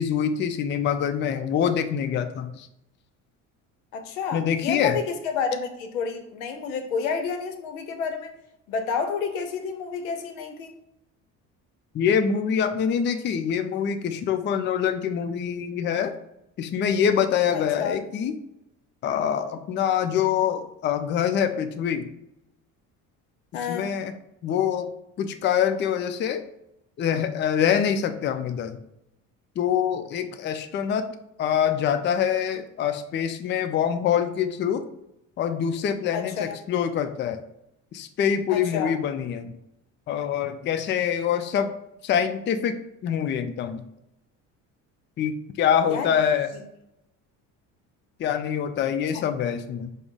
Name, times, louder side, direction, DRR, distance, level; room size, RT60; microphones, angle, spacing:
voice 1, 0.0-2.7 4.3-5.0 11.9-16.1 16.6-18.3 19.0-22.1 23.7-24.1 24.4-24.9 25.2-26.4 27.0-28.8 29.6-31.1 31.4-34.8 35.4-37.4 37.9-39.6 40.1-41.7 42.0-42.7 43.0-43.8 45.2-46.5 48.2-49.9, left 8 dB, 30° left, 9 dB, 0.4 m, -25 dB
voice 2, 3.9-8.3 8.7-10.7 17.5-18.0 23.5-23.9 36.1-36.6 38.5-38.9 45.9-46.1 49.1-49.2, left 5 dB, 85° left, 6 dB, 0.6 m, -30 dB
5.0 x 2.1 x 3.6 m, 0.84 s
hypercardioid pair, 65°, 40 cm